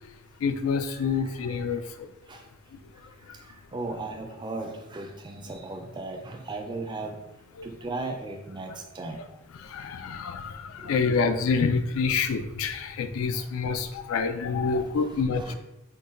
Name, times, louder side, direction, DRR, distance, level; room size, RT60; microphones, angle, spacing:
voice 1, 0.4-2.1 3.3-3.4 7.6-7.7 9.6-15.5, left 5 dB, 90° left, 9 dB, 0.3 m, -27 dB
voice 2, 1.1-1.8 2.3-2.4 3.3-3.4 3.7-7.2 7.6-9.2 10.8-11.1 13.3-13.4 14.7-15.5, right 3 dB, 20° right, 4 dB, 0.3 m, -37 dB
3.9 x 2.2 x 3.7 m, 0.94 s
head